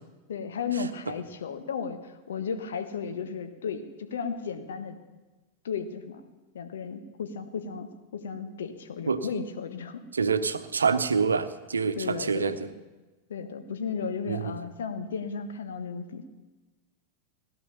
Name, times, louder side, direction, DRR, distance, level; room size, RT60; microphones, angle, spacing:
voice 1, 0.3-5.0 5.6-6.2 6.5-10.0 11.9-12.7 13.3-16.2, left 5 dB, 65° left, 8 dB, 1.3 m, -34 dB
voice 2, 10.1-12.7 14.3-14.5, right 5 dB, 75° right, 11 dB, 0.8 m, -26 dB
17.5 x 10.5 x 6.9 m, 1.2 s
figure-of-eight pair, 90°, 0 cm